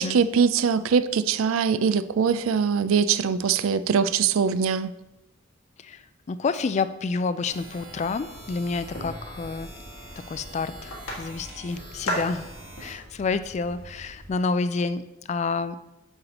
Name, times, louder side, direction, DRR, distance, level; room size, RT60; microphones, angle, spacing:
voice 1, 0.0-4.9, right 6 dB, 80° right, 0.4 m, -22 dB
voice 2, 5.8-9.7 10.3-12.5 12.8-15.8, left 4 dB, 35° left, 0.3 m, -29 dB
sound 1, 7.4-12.9, right 1 dB, 65° right, 2.6 m, -44 dB
sound 2, 8.3-14.3, equal, 80° left, 1.9 m, -38 dB
7.9 x 6.6 x 2.9 m
head